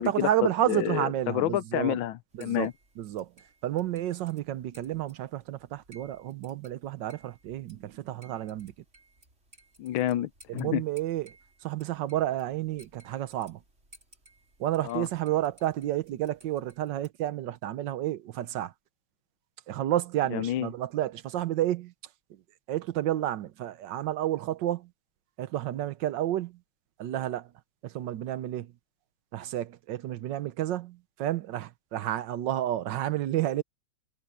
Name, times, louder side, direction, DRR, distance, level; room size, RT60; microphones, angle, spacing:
voice 1, 0.0-2.0 2.3-2.7 3.0-3.3 3.6-8.7 10.5-11.3 11.6-13.6 14.6-18.7 19.7-21.9 22.7-24.9 25.4-26.6 27.0-27.5 27.8-28.7 29.3-33.6, right 13 dB, 65° right, 1.3 m, -30 dB
voice 2, 0.7-2.7 9.8-10.8 14.8-15.1 20.3-20.7, left 13 dB, 75° left, 1.4 m, -29 dB
sound 1, 2.3-17.1, right 1 dB, 30° right, 5.5 m, -60 dB
omnidirectional pair, 2.3 m